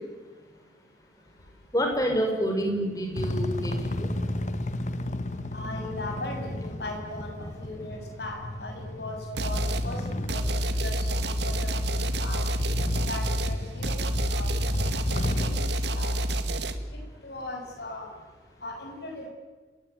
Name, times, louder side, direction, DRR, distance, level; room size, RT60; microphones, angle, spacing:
voice 1, 1.7-4.2 11.5-11.6, equal, 20° left, 3 dB, 5.8 m, -28 dB
sound 1, 3.1-15.6, left 1 dB, 40° left, 1.5 m, -34 dB
voice 2, 5.5-10.0 10.3-10.4 10.8-12.4 13.0-14.5 15.3-16.1 16.6-16.7 17.2-18.1 18.6-19.3, left 2 dB, 65° left, 1 dB, 7.6 m, -38 dB
sound 2, 9.4-9.9 10.3-16.8, equal, 70° right, 2.1 m, -28 dB
28.5 x 21.0 x 9.4 m, 1.4 s
head